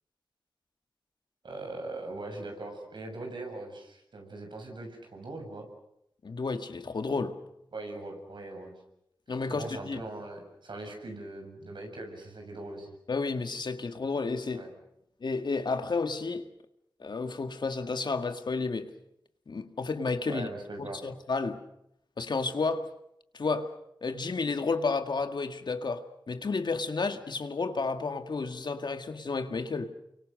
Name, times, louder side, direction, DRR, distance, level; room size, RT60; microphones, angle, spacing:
voice 1, 1.4-5.7 7.7-8.7 9.5-12.9 14.5-14.7 20.3-21.0, right 2 dB, 75° right, 7.2 m, -41 dB
voice 2, 6.2-7.4 9.3-10.0 13.1-14.7 15.2-16.5 17.0-18.9 19.5-20.5 20.8-21.6 22.2-22.9 23.3-23.7 24.0-29.9, left 4 dB, 65° left, 1.9 m, -31 dB
30.0 x 24.0 x 6.6 m
wide cardioid pair, 85°, 8 cm